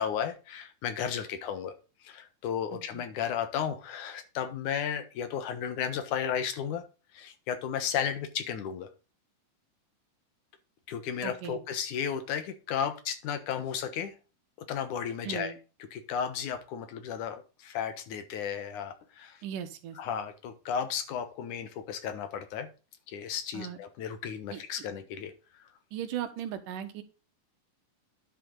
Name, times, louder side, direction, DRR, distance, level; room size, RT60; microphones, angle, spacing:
voice 1, 0.0-1.7 2.0-6.8 7.1-8.9 10.9-14.2 14.7-15.5 15.9-19.4 20.0-22.7 23.1-25.7, left 8 dB, 70° left, 10 dB, 2.6 m, -34 dB
voice 2, 2.7-3.0 11.2-11.6 15.2-15.6 19.4-20.0 23.5-23.8 24.5-24.6 25.9-27.0, right 9 dB, 80° right, 9 dB, 2.8 m, -37 dB
10.5 x 7.6 x 3.8 m, 0.32 s
omnidirectional pair, 3.8 m